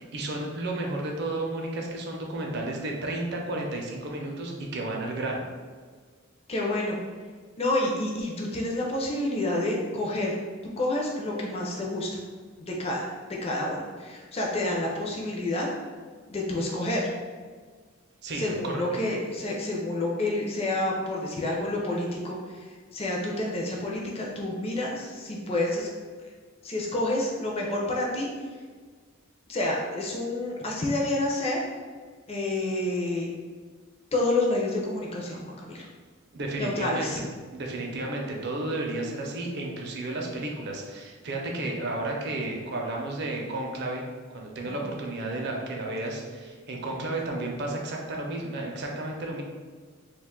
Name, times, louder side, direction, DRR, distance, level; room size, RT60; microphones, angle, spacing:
voice 1, 0.0-5.4 18.2-18.8 36.3-37.2 37.5-44.0 44.3-49.4, right 2 dB, 55° right, 0 dB, 0.5 m, -32 dB
voice 2, 6.5-7.0 7.6-10.4 10.8-12.2 12.6-15.7 16.3-17.1 18.3-25.9 26.6-28.3 29.5-31.6 32.3-33.3 34.1-35.9 36.6-37.2 44.6-44.8, left 1 dB, 30° left, -2 dB, 0.4 m, -29 dB
2.4 x 2.3 x 3.6 m, 1.5 s
head